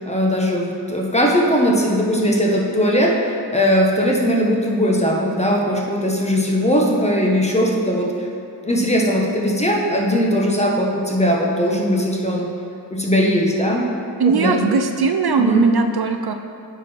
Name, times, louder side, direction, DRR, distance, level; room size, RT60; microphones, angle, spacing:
voice 1, 0.0-8.1 8.6-12.5 12.9-13.8 14.2-14.6 15.4-15.6, equal, 15° left, -2 dB, 1.2 m, -19 dB
voice 2, 14.2-16.3, right 5 dB, 65° right, 6 dB, 0.5 m, -19 dB
8.9 x 4.8 x 4.5 m, 2.4 s
wide cardioid pair, 40°, 41 cm